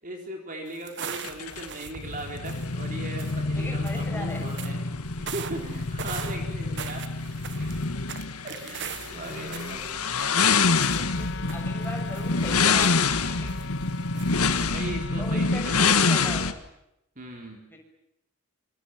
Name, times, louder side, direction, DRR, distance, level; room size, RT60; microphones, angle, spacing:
voice 1, 0.0-4.8 5.2-8.0 8.4-10.0 14.1-16.4 17.2-17.7, right 2 dB, 40° right, 2 dB, 4.3 m, -39 dB
sound 1, 0.7-2.9 3.2-3.4 3.8-4.7 5.3-10.5 10.8-13.2 13.5-13.8 14.1-14.7, right 8 dB, 55° right, 1.5 m, -41 dB
sound 2, 1.2-16.5, left 4 dB, 85° left, 1.8 m, -26 dB
voice 2, 3.5-4.4 10.9-13.5 15.2-16.6 17.7-17.8, left 1 dB, 10° left, 1 dB, 6.7 m, -39 dB
Wind instrument woodwind instrument, 10.7-15.9, left 2 dB, 55° left, 1.1 m, -39 dB
27.0 x 26.0 x 7.6 m, 0.84 s
head